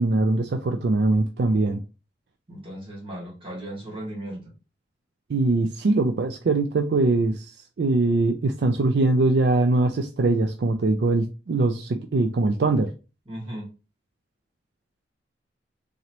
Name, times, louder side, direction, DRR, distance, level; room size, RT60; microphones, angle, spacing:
voice 1, 0.0-1.8 5.3-7.5 7.8-12.9, right 2 dB, 65° right, 0.4 m, -22 dB
voice 2, 2.5-4.4 13.3-13.7, right 1 dB, 30° right, 1.6 m, -36 dB
3.9 x 3.0 x 2.9 m
head